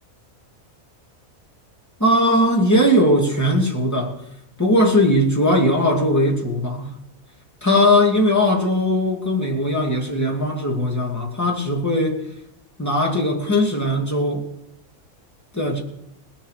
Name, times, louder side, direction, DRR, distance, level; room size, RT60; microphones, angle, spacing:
voice 1, 2.0-4.1 4.6-6.9 7.6-12.2 12.8-14.4 15.5-15.8, left 1 dB, 10° left, -1 dB, 2.5 m, -19 dB
19.5 x 7.3 x 6.6 m, 0.79 s
omnidirectional pair, 1.5 m